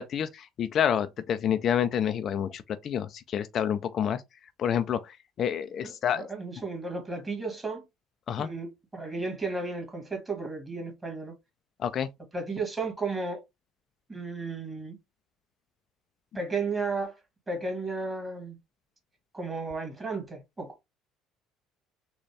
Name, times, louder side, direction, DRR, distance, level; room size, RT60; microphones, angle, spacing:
voice 1, 0.0-4.2 4.6-6.3 8.3-8.5 11.8-12.1, left 9 dB, 50° left, 0.4 m, -28 dB
voice 2, 5.8-7.8 8.4-11.4 12.3-13.4 14.1-15.0 16.3-17.2 17.5-18.6 19.3-20.8, right 3 dB, 20° right, 1.8 m, -34 dB
4.0 x 2.2 x 3.2 m
supercardioid pair, 85°, 0 cm